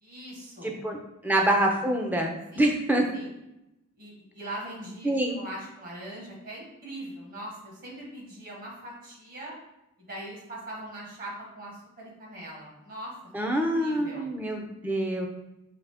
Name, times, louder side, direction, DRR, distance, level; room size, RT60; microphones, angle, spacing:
voice 1, 0.0-0.7 1.3-1.4 2.5-2.6 3.1-3.3 3.9-9.5 10.0-13.2 13.4-14.3, right 1 dB, 40° right, -3 dB, 1.3 m, -41 dB
voice 2, 0.6-1.0 1.2-3.0 5.0-5.4 13.3-15.3, right 1 dB, 10° right, 1 dB, 0.5 m, -26 dB
5.0 x 2.9 x 3.4 m, 0.91 s
head